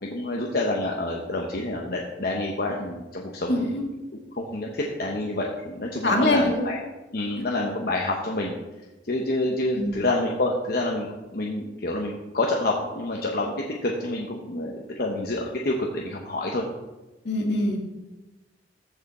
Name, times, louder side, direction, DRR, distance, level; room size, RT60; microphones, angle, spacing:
voice 1, 0.0-3.7 4.3-6.8 7.1-8.5 9.0-13.5 13.8-16.7, left 2 dB, 55° left, -1 dB, 1.0 m, -28 dB
voice 2, 3.5-3.8 6.0-6.6 9.8-10.0 17.2-17.8, left 1 dB, 70° left, 1 dB, 1.9 m, -23 dB
14.5 x 4.9 x 4.2 m, 1.1 s
head